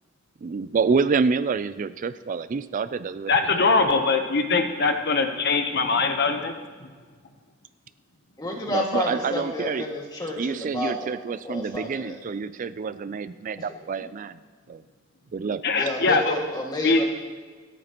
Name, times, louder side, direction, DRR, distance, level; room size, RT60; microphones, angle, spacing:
voice 1, 0.4-3.3 8.7-9.8 10.4-14.4 14.7-14.8 15.3-15.6, right 5 dB, 40° right, 14 dB, 0.4 m, -27 dB
voice 2, 3.3-6.5 15.6-16.4 16.8-17.0, left 3 dB, 55° left, 6 dB, 0.9 m, -22 dB
voice 3, 8.4-11.1 11.4-12.2 15.8-17.0, left 1 dB, 20° left, -1 dB, 1.9 m, -30 dB
26.5 x 9.1 x 3.0 m, 1.5 s
head